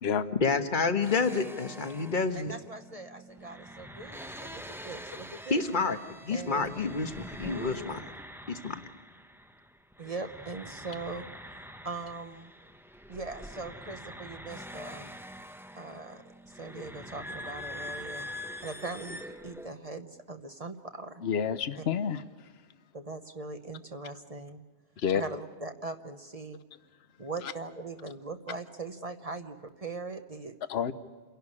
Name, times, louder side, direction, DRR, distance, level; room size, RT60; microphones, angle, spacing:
voice 1, 0.4-2.5 5.5-6.0 6.2-8.0 8.5-8.7, left 4 dB, 50° left, 8 dB, 1.3 m, -29 dB
sound 1, 1.0-9.7 9.9-19.7, equal, ahead, 0.7 m, -45 dB
voice 2, 2.4-5.6 6.3-6.7 7.4-8.0 10.0-11.3 11.8-12.5 13.1-15.2 15.7-18.3 18.6-21.2 21.8-21.9 22.9-24.6 25.1-26.6 27.2-30.6, right 3 dB, 35° right, 7 dB, 0.9 m, -40 dB
voice 3, 21.2-22.2 25.0-25.2 30.7-30.9, left 7 dB, 70° left, 12 dB, 1.1 m, -28 dB
28.5 x 11.5 x 9.8 m, 1.4 s
omnidirectional pair, 1.1 m